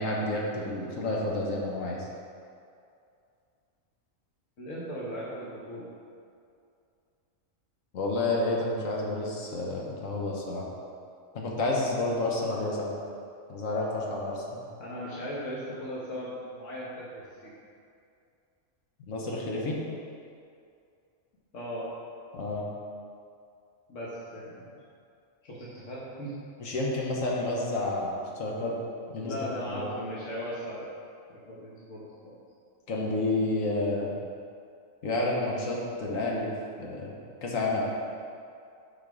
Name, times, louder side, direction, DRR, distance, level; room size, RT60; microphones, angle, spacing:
voice 1, 0.0-2.1 7.9-10.6 11.3-12.9 13.5-14.6 19.1-19.8 22.3-22.6 26.6-28.7 29.1-29.4 29.7-29.9 32.9-34.1 35.0-36.5 36.8-37.2 37.4-37.8, left 2 dB, 90° left, -2 dB, 1.5 m, -30 dB
voice 2, 4.6-5.9 14.8-17.5 21.5-21.9 23.9-24.7 25.4-26.3 29.2-30.9 31.3-32.4, equal, 70° left, -7 dB, 1.7 m, -38 dB
8.5 x 4.6 x 6.1 m, 2.4 s
omnidirectional pair, 1.3 m